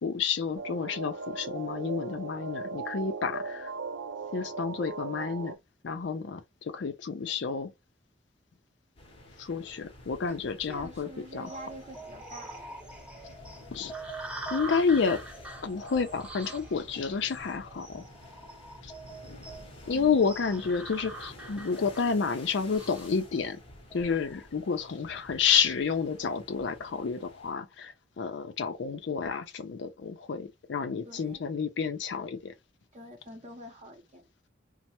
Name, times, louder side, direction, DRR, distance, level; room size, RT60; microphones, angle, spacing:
voice 1, 0.0-3.7 4.3-5.5 5.8-7.7 9.4-11.5 13.7-13.9 14.5-15.2 15.6-18.0 18.8-18.9 19.9-23.6 23.9-32.5, left 5 dB, 70° left, 0.5 m, -30 dB
sound 1, 0.6-5.6, right 4 dB, 85° right, 0.5 m, -38 dB
sound 2, 9.0-27.5, left 1 dB, 30° left, 0.8 m, -51 dB
voice 2, 10.3-12.8 19.9-20.3 31.0-31.4 32.9-34.5, right 1 dB, 40° right, 0.7 m, -46 dB
sound 3, 11.4-24.5, right 2 dB, 5° right, 0.6 m, -44 dB
3.2 x 2.0 x 2.8 m
head